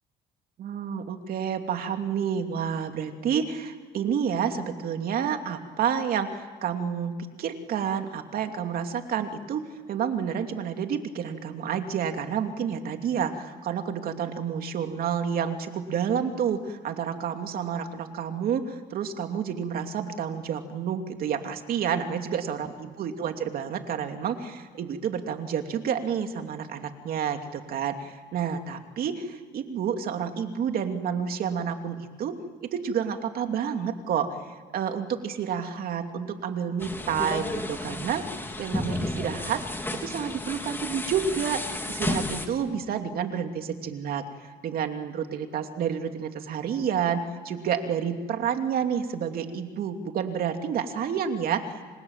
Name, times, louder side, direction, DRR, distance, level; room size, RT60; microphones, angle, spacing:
voice 1, 0.6-9.6 9.9-34.4 34.7-51.9, right 7 dB, 60° right, 5 dB, 2.8 m, -29 dB
sound 1, 36.8-42.5, left 2 dB, 15° left, 3.3 m, -32 dB
30.0 x 26.0 x 7.4 m, 1.5 s
cardioid pair, 110°, 17 cm